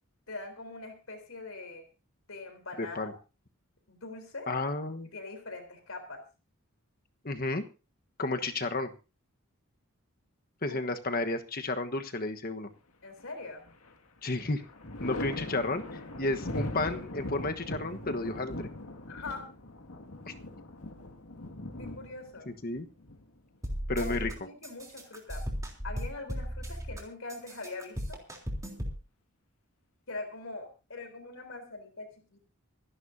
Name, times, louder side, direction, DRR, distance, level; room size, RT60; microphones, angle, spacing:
voice 1, 0.3-1.8 2.3-3.1 3.9-4.5 5.1-6.2 10.7-10.8 11.2-11.3 13.0-13.7 19.1-19.5 21.8-22.5 24.0-25.5 25.8-28.2 30.1-32.4, left 3 dB, 65° left, 6 dB, 4.0 m, -42 dB
voice 2, 2.8-3.1 4.5-5.1 7.2-7.6 8.2-8.9 10.6-12.7 14.2-14.6 15.0-15.8 16.2-18.7 20.3-20.4 22.5-22.9 23.9-24.3, left 2 dB, 40° left, 7 dB, 1.3 m, -32 dB
Thunder, 13.2-14.0 14.3-23.9 25.4-26.2, left 1 dB, 85° left, 2.2 m, -40 dB
sound 1, 23.6-24.3 24.6-27.0 27.3-29.0, equal, 15° right, 3.4 m, -36 dB
26.0 x 11.5 x 2.8 m, 0.32 s
head